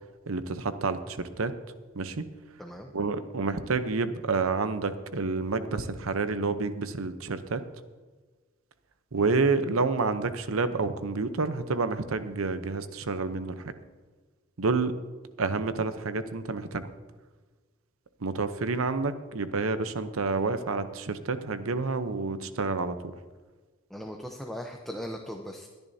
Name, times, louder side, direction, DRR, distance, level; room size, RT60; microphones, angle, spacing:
voice 1, 0.3-1.5 1.9-2.2 2.9-7.6 9.1-13.6 14.6-14.9 15.4-16.9 18.2-23.0, right 4 dB, 90° right, 11 dB, 0.8 m, -29 dB
voice 2, 2.6-2.9 23.9-25.7, equal, ahead, 2 dB, 0.7 m, -38 dB
23.0 x 10.5 x 2.8 m, 1.4 s
head